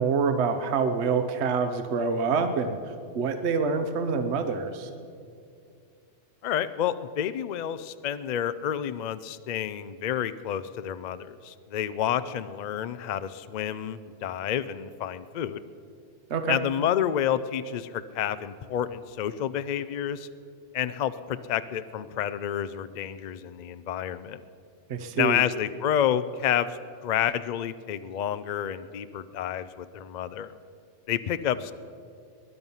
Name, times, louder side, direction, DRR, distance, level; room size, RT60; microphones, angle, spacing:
voice 1, 0.0-2.8 3.1-4.9 16.3-16.6 24.9-25.4, right 5 dB, 65° right, 8 dB, 1.1 m, -26 dB
voice 2, 6.4-15.6 16.5-20.3 20.7-24.4 25.2-26.7 27.0-30.5 31.1-31.7, left 10 dB, 70° left, 13 dB, 0.4 m, -29 dB
20.5 x 11.0 x 5.6 m, 2.3 s
omnidirectional pair, 1.3 m